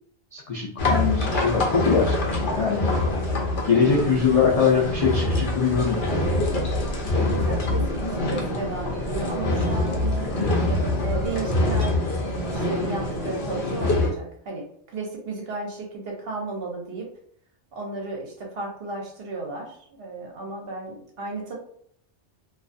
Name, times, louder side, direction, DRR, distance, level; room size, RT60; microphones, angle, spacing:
voice 1, 0.3-2.9 3.7-6.0 10.2-10.6, left 6 dB, 75° left, -2 dB, 0.3 m, -23 dB
sound 1, 0.8-14.1, left 2 dB, 55° left, 0.7 m, -25 dB
voice 2, 6.6-6.9 7.3-10.3 11.0-17.1 17.7-21.5, right 3 dB, 60° right, 0 dB, 0.9 m, -34 dB
2.4 x 2.3 x 2.5 m, 0.64 s
omnidirectional pair, 1.2 m